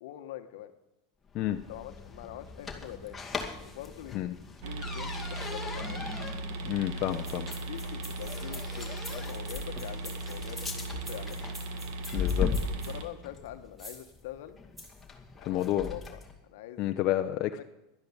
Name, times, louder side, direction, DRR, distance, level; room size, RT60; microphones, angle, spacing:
voice 1, 0.0-0.7 1.7-3.2 3.6-4.3 4.6-6.1 7.4-11.4 12.9-14.6 15.4-16.8 17.2-17.6, left 12 dB, 75° left, 9 dB, 1.2 m, -44 dB
sound 1, 1.3-16.4, left 5 dB, 15° left, 2.2 m, -39 dB
sound 2, 4.6-13.0, right 2 dB, 65° right, 1.9 m, -38 dB
voice 2, 6.6-7.5 12.1-12.5 15.4-15.9 16.8-17.5, left 13 dB, 50° left, 6 dB, 0.8 m, -29 dB
sound 3, 7.1-12.9 13.8-14.1 14.8-15.0 15.6-15.7, left 1 dB, 15° right, 7.0 m, -47 dB
11.5 x 10.5 x 8.3 m, 0.93 s
supercardioid pair, 115°, 0 cm